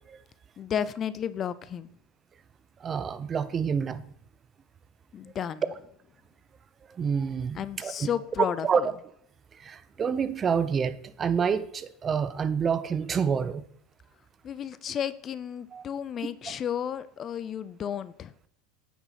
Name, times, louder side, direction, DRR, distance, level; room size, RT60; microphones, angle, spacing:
voice 1, 0.6-1.9 5.1-5.7 7.5-8.9 14.4-18.3, left 8 dB, 35° left, 16 dB, 0.4 m, -33 dB
voice 2, 2.8-4.0 7.0-8.1 8.6-8.8 9.6-13.6 15.7-15.8, right 6 dB, 25° right, 14 dB, 0.6 m, -28 dB
9.4 x 5.9 x 4.2 m, 0.67 s
supercardioid pair, 115°, 0 cm